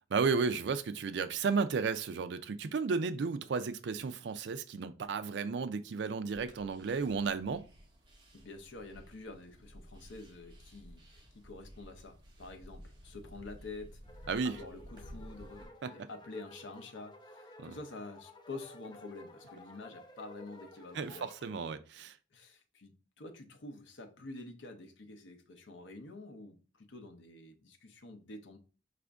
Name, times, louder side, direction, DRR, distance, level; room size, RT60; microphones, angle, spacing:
voice 1, 0.1-7.6 14.3-14.6 15.8-16.1 17.6-17.7 20.9-22.1, right 5 dB, 60° right, 0.4 m, -33 dB
sound 1, 6.2-15.6, equal, 25° right, 0.9 m, -54 dB
voice 2, 8.3-14.0 14.4-21.6 22.3-28.6, left 2 dB, 70° left, 0.7 m, -48 dB
sound 2, 14.0-21.4, left 1 dB, 20° left, 0.4 m, -54 dB
5.0 x 2.5 x 3.4 m
head